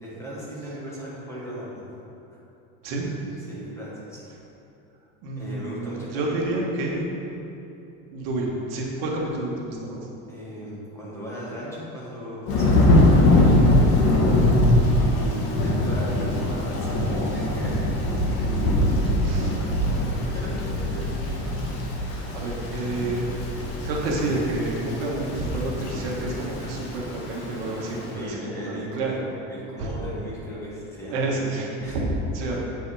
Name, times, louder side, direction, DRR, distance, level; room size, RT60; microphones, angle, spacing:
voice 1, 0.0-1.8 3.5-4.2 5.3-6.6 10.3-13.6 14.7-17.8 20.2-21.1 28.1-29.2 29.5-31.3 31.8-32.0 32.4-32.5, equal, 10° left, -7 dB, 1.5 m, -37 dB
voice 2, 5.2-7.1 8.1-10.1 19.2-19.6 22.3-23.3 23.8-29.1 29.8-29.9 31.1-32.0 32.3-32.6, right 2 dB, 65° right, -2 dB, 1.6 m, -29 dB
Thunder / Rain, 12.5-28.1, left 1 dB, 45° left, 1.4 m, -22 dB
8.3 x 5.4 x 4.9 m, 2.9 s
cardioid pair, 170°, 32 cm